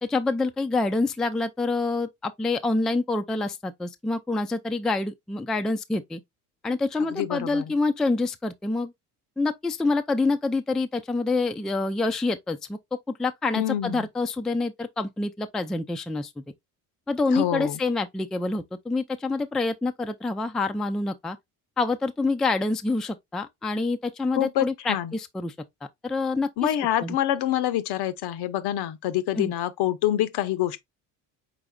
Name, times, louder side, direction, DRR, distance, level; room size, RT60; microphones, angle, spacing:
voice 1, 0.0-6.2 6.6-8.9 9.4-12.8 13.2-16.3 17.1-21.4 21.8-25.5 26.0-26.7 27.0-27.2 29.4-29.5, left 3 dB, ahead, 0.3 m, -27 dB
voice 2, 7.1-7.7 13.6-14.1 17.3-17.8 24.4-25.1 26.6-30.8, left 12 dB, 65° left, 0.7 m, -26 dB
4.9 x 4.0 x 2.2 m
supercardioid pair, 80°, 42 cm